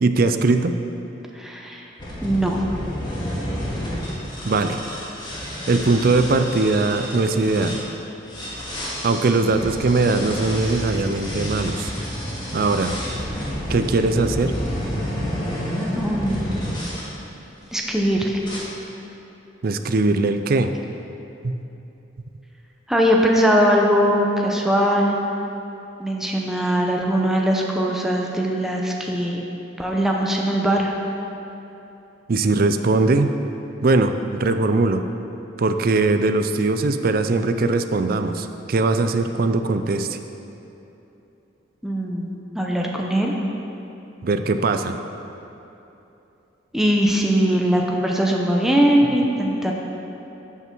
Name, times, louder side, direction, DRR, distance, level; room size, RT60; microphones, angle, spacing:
voice 1, 0.0-0.7 4.5-4.8 5.7-7.8 9.0-11.9 12.5-13.0 13.7-14.5 19.6-20.7 21.4-21.6 32.3-33.3 33.8-35.0 35.6-40.2 44.2-45.0, right 3 dB, 50° right, 8 dB, 0.4 m, -20 dB
voice 2, 1.4-1.8 2.2-2.6 15.9-16.5 17.7-18.4 22.9-25.2 26.0-29.4 29.8-30.9 41.8-43.3 46.7-49.7, equal, ahead, -1 dB, 0.7 m, -20 dB
sound 1, 2.0-7.8 8.3-17.1 17.7-18.0 18.4-18.6, equal, 25° left, 1.9 m, -30 dB
12.0 x 5.8 x 4.6 m, 2.9 s
head